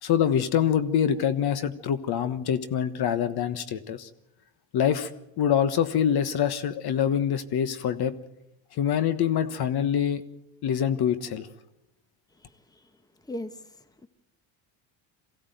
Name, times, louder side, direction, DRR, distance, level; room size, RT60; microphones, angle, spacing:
voice 1, 0.0-4.1 4.7-5.1 5.4-8.1 8.7-10.2 10.6-11.5, left 9 dB, 55° left, 13 dB, 1.3 m, -25 dB
voice 2, 12.3-12.9 13.2-14.1, left 1 dB, 10° left, 11 dB, 1.3 m, -40 dB
23.5 x 16.0 x 9.2 m, 0.92 s
cardioid pair, 115°, 47 cm